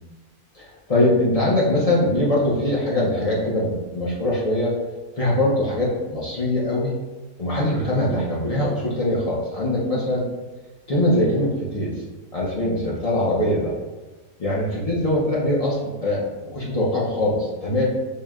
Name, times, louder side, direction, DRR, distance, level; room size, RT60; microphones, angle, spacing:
voice 1, 0.5-4.7 5.2-6.9 7.4-10.3 10.9-11.9 12.3-13.7 14.4-17.9, left 1 dB, 60° left, -5 dB, 0.4 m, -22 dB
4.5 x 2.1 x 3.5 m, 1.1 s
omnidirectional pair, 1.6 m